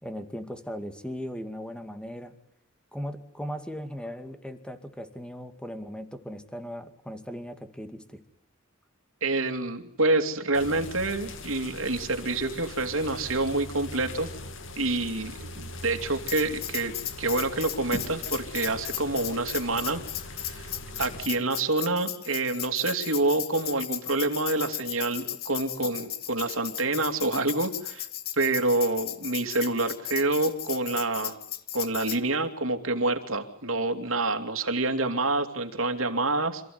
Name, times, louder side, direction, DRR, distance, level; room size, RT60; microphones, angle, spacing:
voice 1, 0.0-2.3 2.9-8.2, equal, 5° left, 8 dB, 2.3 m, -38 dB
voice 2, 9.2-14.3 14.8-16.9 17.2-20.0 20.5-20.7 21.0-28.1 28.4-31.4 31.7-36.6, right 2 dB, 75° right, 5 dB, 2.9 m, -27 dB
sound 1, 10.5-21.3, left 2 dB, 65° left, 2.6 m, -41 dB
Tambourine, 16.3-32.2, left 12 dB, 50° left, 1.3 m, -36 dB
27.5 x 15.5 x 9.7 m, 0.76 s
head